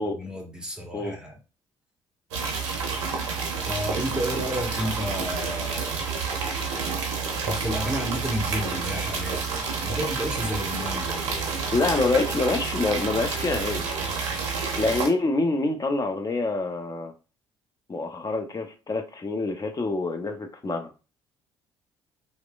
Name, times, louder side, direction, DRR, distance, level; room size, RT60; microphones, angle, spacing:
voice 1, 0.1-1.4 3.7-6.1 7.4-11.8, equal, 5° right, 2 dB, 1.0 m, -32 dB
sound 1, 2.3-15.1, right 5 dB, 80° right, 0.5 m, -29 dB
voice 2, 11.7-13.9 14.8-17.1 17.9-20.9, left 3 dB, 25° left, 4 dB, 0.7 m, -26 dB
3.0 x 2.0 x 2.4 m, 0.33 s
hypercardioid pair, 50°, 15 cm